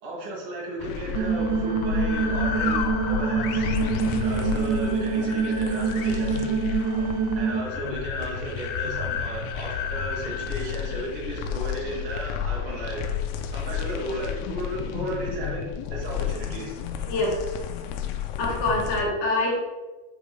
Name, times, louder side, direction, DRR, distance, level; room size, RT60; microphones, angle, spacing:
voice 1, 0.0-3.7 4.2-6.6 7.3-13.0 13.5-16.8, right 1 dB, 40° right, -5 dB, 2.1 m, -34 dB
sound 1, 0.8-19.0, left 8 dB, 85° left, 3.0 m, -31 dB
sound 2, 1.2-7.6, right 5 dB, 90° right, 3.0 m, -26 dB
voice 2, 18.4-19.6, left 2 dB, 65° left, -3 dB, 2.9 m, -25 dB
10.0 x 5.0 x 3.2 m, 1.2 s
omnidirectional pair, 5.3 m